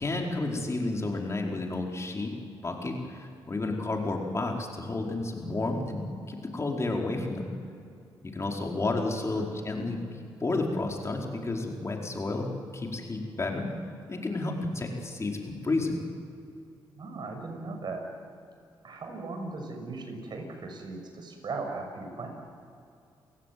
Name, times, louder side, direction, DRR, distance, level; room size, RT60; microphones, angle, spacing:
voice 1, 0.0-2.3 2.6-7.5 8.2-13.7 14.1-16.0, left 2 dB, 30° left, 1 dB, 4.6 m, -31 dB
voice 2, 9.1-9.5 16.9-18.1 18.8-22.3, right 3 dB, 55° right, 4 dB, 6.5 m, -38 dB
29.0 x 16.5 x 9.4 m, 2.6 s
cardioid pair, 75°, 9 cm